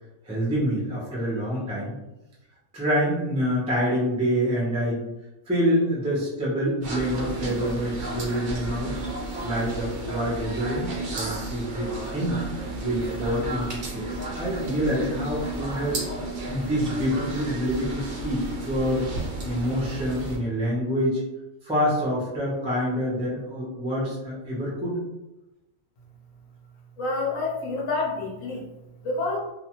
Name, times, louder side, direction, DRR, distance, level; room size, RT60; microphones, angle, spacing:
voice 1, 0.2-1.9 2.7-5.0 5.5-8.9 9.4-12.4 12.8-16.0 16.5-19.1 19.4-21.2 21.6-25.0, equal, 10° right, -6 dB, 0.4 m, -26 dB
sound 1, 6.8-20.4, right 1 dB, 60° right, 0.6 m, -33 dB
voice 2, 27.0-28.7 29.0-29.4, left 3 dB, 70° left, -2 dB, 1.0 m, -28 dB
2.4 x 2.4 x 2.9 m, 0.99 s
omnidirectional pair, 1.5 m